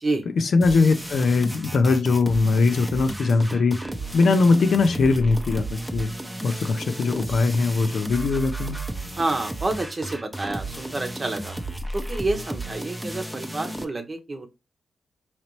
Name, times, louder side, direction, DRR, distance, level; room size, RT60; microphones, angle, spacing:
voice 1, 0.4-3.8 4.1-6.1 6.4-8.8, left 4 dB, 75° left, 0.5 m, -21 dB
sound 1, 0.6-13.8, right 1 dB, 5° right, 0.6 m, -34 dB
voice 2, 9.1-11.6 11.9-14.5, right 2 dB, 35° right, 0.8 m, -28 dB
3.9 x 2.9 x 3.0 m
cardioid pair, 80°, 0 cm